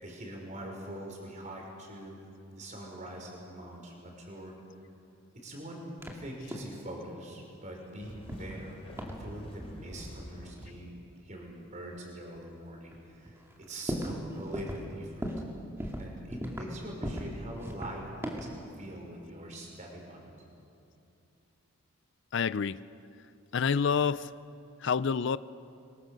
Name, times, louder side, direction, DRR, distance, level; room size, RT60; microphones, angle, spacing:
voice 1, 0.0-2.2 2.5-4.5 5.4-5.8 6.1-8.7 9.2-13.4 13.7-15.3 16.0-20.3, right 1 dB, 35° right, 0 dB, 5.0 m, -43 dB
sound 1, 6.0-6.2 6.5-6.8 8.3-8.7 9.0-9.2 10.6-10.7 11.6-11.7 12.4-12.5 12.9-13.0 13.3-14.2 14.5-14.9 15.2-15.5 15.8-16.7 17.0-17.4 17.6-18.6, equal, 10° right, 2.3 m, -37 dB
sound 2, 8.0-10.5, equal, 25° left, 3.7 m, -46 dB
voice 2, 22.3-22.8 23.5-24.3 24.8-25.4, left 6 dB, 60° left, 17 dB, 0.5 m, -27 dB
24.0 x 23.0 x 6.7 m, 2.7 s
head